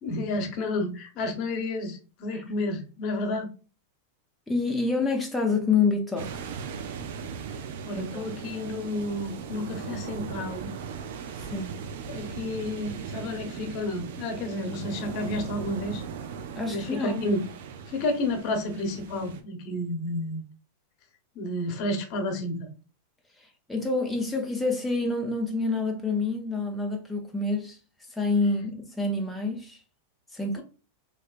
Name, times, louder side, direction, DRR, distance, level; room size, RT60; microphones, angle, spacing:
voice 1, 0.0-3.5 7.8-10.7 12.1-16.0 16.7-17.5 17.9-20.4 21.3-22.7, left 2 dB, 50° left, 1.0 m, -31 dB
voice 2, 4.5-6.4 7.9-8.3 11.5-11.8 16.6-17.2 23.7-27.8 28.2-29.8 30.3-30.6, left 3 dB, 5° left, 0.6 m, -27 dB
sound 1, 6.2-19.4, right 6 dB, 70° right, 0.5 m, -38 dB
3.2 x 2.9 x 2.4 m
hypercardioid pair, 110°, 0 cm